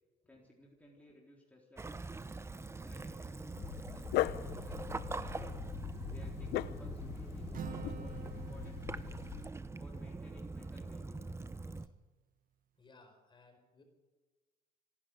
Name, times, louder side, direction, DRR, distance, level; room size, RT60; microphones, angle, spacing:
voice 1, 0.3-2.3 2.8-3.6 3.9-5.6 6.1-9.2 9.8-11.4, left 1 dB, 10° left, -3 dB, 3.9 m, -58 dB
Waves surf / Splash splatter / Trickle dribble, 1.8-11.9, right 3 dB, 15° right, 0.8 m, -43 dB
Dog, 3.6-9.5, left 15 dB, 85° left, 0.7 m, -40 dB
Acoustic guitar, 7.5-11.2, right 9 dB, 55° right, 1.5 m, -50 dB
voice 2, 12.8-13.8, left 3 dB, 30° left, 5 dB, 5.0 m, -62 dB
26.5 x 11.5 x 9.4 m, 1.3 s
cardioid pair, 110°, 17 cm